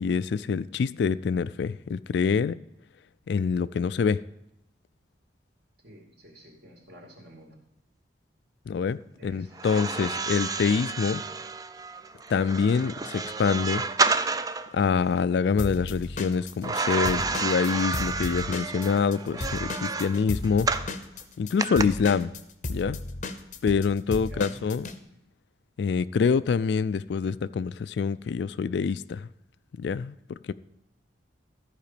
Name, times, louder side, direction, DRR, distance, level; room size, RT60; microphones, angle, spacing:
voice 1, 0.0-2.6 3.3-4.2 8.7-11.2 12.3-13.8 14.7-20.7 21.4-22.4 22.7-23.0 23.6-24.9 25.8-29.3 29.8-30.5, left 5 dB, 60° left, 0.3 m, -26 dB
voice 2, 5.8-7.6 9.2-10.2 24.3-24.5, right 1 dB, 60° right, 2.6 m, -50 dB
sound 1, 9.5-14.7 16.6-20.9 21.6-21.8, right 4 dB, 20° right, 0.4 m, -30 dB
Drum kit / Drum, 15.6-19.2 19.4-25.0, left 2 dB, 40° left, 0.7 m, -35 dB
13.5 x 4.9 x 6.8 m
head